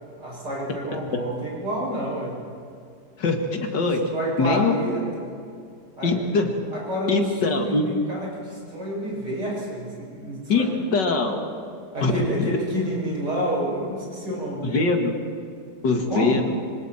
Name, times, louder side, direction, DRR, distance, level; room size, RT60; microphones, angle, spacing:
voice 1, 0.2-2.3 4.1-5.0 6.0-6.2 6.7-10.6 11.9-14.9 16.1-16.3, equal, 75° right, -4 dB, 7.4 m, -29 dB
voice 2, 3.2-4.0 4.4-4.8 6.0-6.5 7.1-7.9 10.5-11.4 12.0-12.1 12.4-12.5 14.6-15.1 15.8-16.5, left 3 dB, 85° left, 3 dB, 2.6 m, -22 dB
25.5 x 25.0 x 4.4 m, 2.3 s
omnidirectional pair, 1.8 m